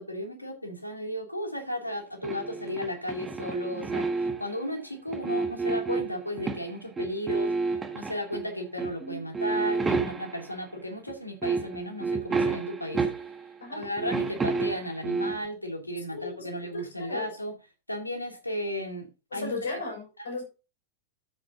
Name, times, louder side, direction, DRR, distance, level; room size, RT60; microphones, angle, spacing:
voice 1, 0.0-7.5 7.9-13.0 13.7-17.5 17.9-19.5, equal, 85° left, 3 dB, 2.6 m, -34 dB
sound 1, 2.2-4.6 5.1-6.7 7.0-8.5 8.8-9.0 9.3-10.5 11.1-11.2 11.4-13.5 13.8-15.5, right 4 dB, 15° right, 1.6 m, -30 dB
voice 2, 16.1-17.3 19.3-20.4, left 3 dB, 65° left, 2 dB, 5.9 m, -36 dB
13.5 x 8.4 x 2.7 m, 0.29 s
figure-of-eight pair, 90°, 0 cm